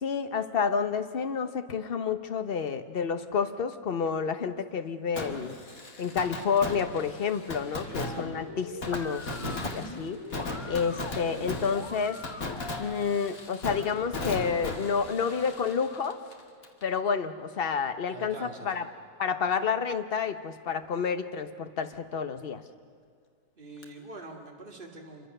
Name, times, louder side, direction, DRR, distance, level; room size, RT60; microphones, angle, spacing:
voice 1, 0.0-5.6 6.0-10.2 10.7-12.2 12.8-16.2 16.8-18.8 19.2-22.6, left 6 dB, 40° left, 9 dB, 1.1 m, -29 dB
Fireworks, 5.2-16.8 17.1-17.2 23.8-23.9, left 2 dB, 60° left, 2.6 m, -37 dB
voice 2, 7.8-8.3 18.0-18.8 23.6-25.3, right 2 dB, 35° right, 0 dB, 2.6 m, -45 dB
sound 1, 8.0-13.0, left 3 dB, 25° left, 0.8 m, -41 dB
27.5 x 23.5 x 6.8 m, 2.1 s
omnidirectional pair, 1.7 m